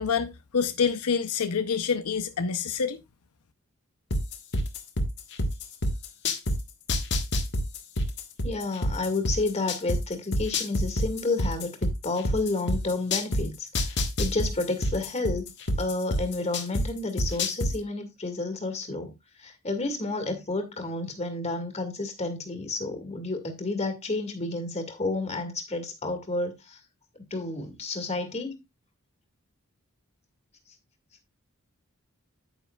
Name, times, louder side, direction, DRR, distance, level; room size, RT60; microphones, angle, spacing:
voice 1, 0.0-3.0, left 6 dB, 80° left, 0.7 m, -27 dB
sound 1, 4.1-6.6 6.9-10.0 10.3-13.4 13.7-16.8 17.2-17.7, left 1 dB, 50° left, 1.5 m, -26 dB
voice 2, 8.4-15.5 15.8-26.8 27.3-28.6, left 2 dB, 30° left, 2.1 m, -31 dB
9.4 x 9.3 x 2.4 m
head